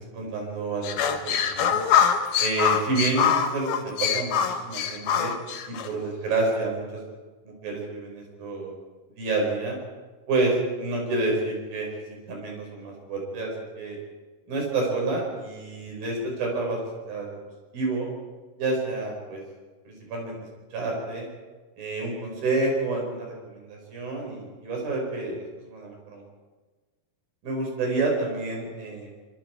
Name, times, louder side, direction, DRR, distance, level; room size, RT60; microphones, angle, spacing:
voice 1, 0.0-1.8 2.4-5.3 5.7-6.8 7.5-8.7 9.2-9.8 10.3-13.5 13.8-14.0 14.5-17.4 17.7-18.1 18.6-19.4 19.9-20.4 20.7-21.3 21.8-26.2 27.4-29.1, right 3 dB, 75° right, 0 dB, 7.1 m, -29 dB
sound 1, 0.8-5.9, left 8 dB, 85° left, 3.3 m, -24 dB
25.0 x 25.0 x 4.7 m, 1.3 s
omnidirectional pair, 4.3 m